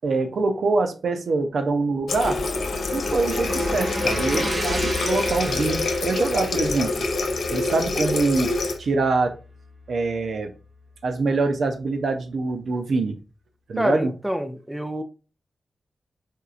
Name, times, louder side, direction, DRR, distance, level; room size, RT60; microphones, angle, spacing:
voice 1, 0.0-2.4 2.9-6.9 7.5-8.5 8.8-9.3 9.9-10.5 11.0-13.2 13.7-14.1, right 3 dB, 80° right, 0.5 m, -24 dB
sound 1, 2.0-10.0, equal, 45° right, 0.9 m, -34 dB
Water tap faucet, 2.1-8.8, left 3 dB, 85° left, 0.5 m, -26 dB
voice 2, 13.8-15.0, equal, 10° right, 0.4 m, -26 dB
4.4 x 2.4 x 2.4 m
cardioid pair, 75°, 0 cm